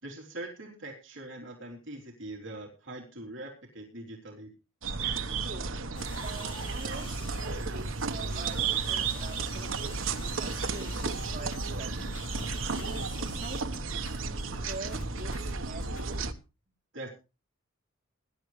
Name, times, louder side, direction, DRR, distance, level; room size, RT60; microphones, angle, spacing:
voice 1, 0.0-4.5 16.9-17.1, right 1 dB, 65° right, -1 dB, 3.5 m, -42 dB
sound 1, 4.8-16.3, right 4 dB, 85° right, 1.2 m, -33 dB
voice 2, 5.4-5.8 6.2-12.2 12.8-16.3, right 2 dB, 40° right, -3 dB, 4.4 m, -45 dB
sound 2, 5.9-13.6, left 3 dB, 25° left, 2.1 m, -49 dB
sound 3, 11.2-16.3, equal, 75° left, 2.5 m, -44 dB
20.5 x 11.0 x 3.3 m, 0.30 s
head